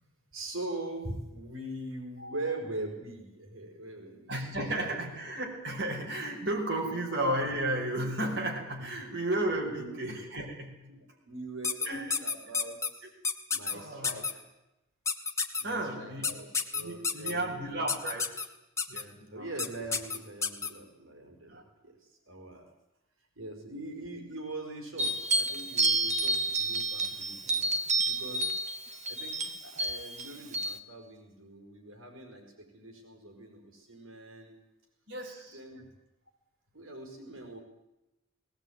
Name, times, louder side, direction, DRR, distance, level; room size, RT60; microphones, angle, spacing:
voice 1, 0.3-4.3 6.8-7.1 9.6-9.9 10.9-13.1 13.5-14.4 15.6-18.0 19.3-22.6 23.3-27.7 28.0-28.6 29.1-34.5 35.5-35.9 36.7-37.6, right 2 dB, 85° right, 3 dB, 5.1 m, -42 dB
voice 2, 4.3-10.7 11.9-12.2 13.7-14.2 15.6-16.3 16.8-18.3 18.9-19.5 21.5-21.6 35.1-35.6, right 1 dB, 60° right, -1 dB, 5.2 m, -33 dB
sound 1, 11.6-12.9 13.2-13.7 14.0-14.3 15.1-15.6 16.2-17.3 17.9-18.5 18.8-19.0 19.6-19.7 19.9-20.7, left 5 dB, 15° left, 1.7 m, -29 dB
sound 2, 25.0-30.8, right 2 dB, 35° right, 1.3 m, -30 dB
19.5 x 19.0 x 9.4 m, 0.94 s
head